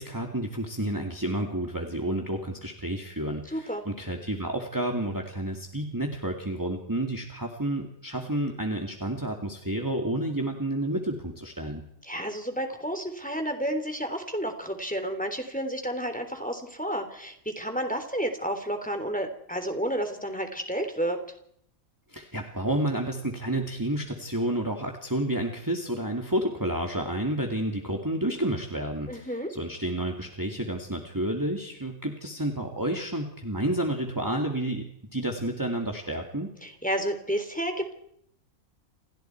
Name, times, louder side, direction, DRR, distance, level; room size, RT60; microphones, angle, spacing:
voice 1, 0.0-11.8 22.1-36.5, right 1 dB, 15° right, 2 dB, 2.4 m, -30 dB
voice 2, 3.5-3.8 12.0-21.2 29.1-29.5 36.6-37.9, equal, 5° left, 5 dB, 3.4 m, -31 dB
29.5 x 28.5 x 4.7 m, 0.72 s
omnidirectional pair, 1.5 m